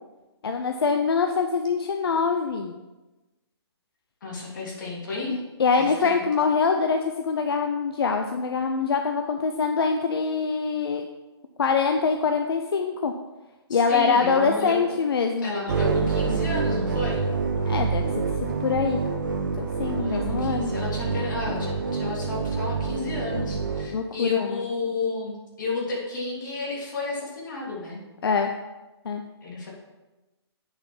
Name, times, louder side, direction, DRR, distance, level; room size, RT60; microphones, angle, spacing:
voice 1, 0.4-2.7 5.3-11.1 11.6-13.1 13.7-15.5 17.7-18.1 18.4-19.0 19.6-20.7 23.9-24.7 28.2-28.5 29.0-29.2, left 5 dB, 65° left, 5 dB, 0.7 m, -24 dB
voice 2, 4.2-5.3 5.8-6.2 13.7-14.8 15.4-17.3 19.8-28.0 29.4-29.7, left 3 dB, 45° left, -3 dB, 3.1 m, -32 dB
sound 1, 15.7-23.9, right 5 dB, 45° right, 1.0 m, -27 dB
8.2 x 7.0 x 5.5 m, 1.1 s
hypercardioid pair, 175°, 14 cm